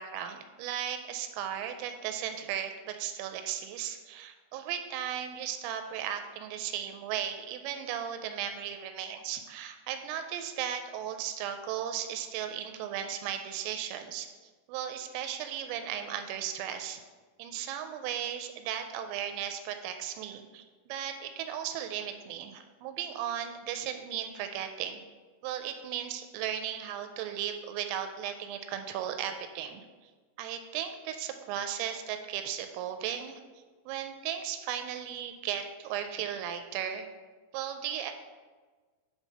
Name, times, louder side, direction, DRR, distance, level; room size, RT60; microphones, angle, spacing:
voice 1, 0.0-17.0 17.4-25.0 25.4-29.9 30.4-33.4 33.9-37.1 37.5-38.1, right 9 dB, 85° right, 7 dB, 3.1 m, -36 dB
9.9 x 3.8 x 4.1 m, 1.4 s
omnidirectional pair, 5.9 m